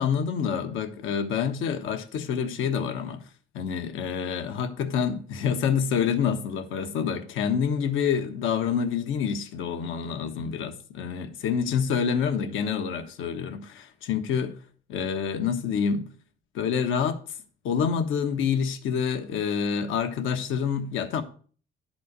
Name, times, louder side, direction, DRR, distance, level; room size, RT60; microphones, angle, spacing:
voice 1, 0.0-3.2 3.5-14.5 14.9-16.1 16.5-17.2 17.6-21.2, left 7 dB, 90° left, 1.2 m, -27 dB
11.0 x 4.3 x 6.6 m
cardioid pair, 90°, 20 cm